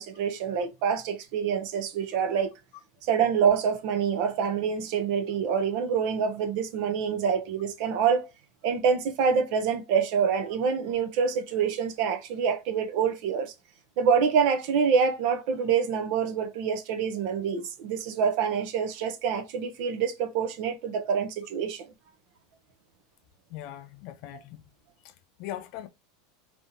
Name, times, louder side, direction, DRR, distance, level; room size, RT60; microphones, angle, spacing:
voice 1, 0.0-2.5 3.0-8.3 8.6-13.5 14.0-21.9, right 6 dB, 65° right, 0.7 m, -26 dB
voice 2, 23.5-24.7 25.0-25.1 25.4-25.9, left 12 dB, 60° left, 0.5 m, -40 dB
3.5 x 2.9 x 2.6 m
hypercardioid pair, 110°, 0 cm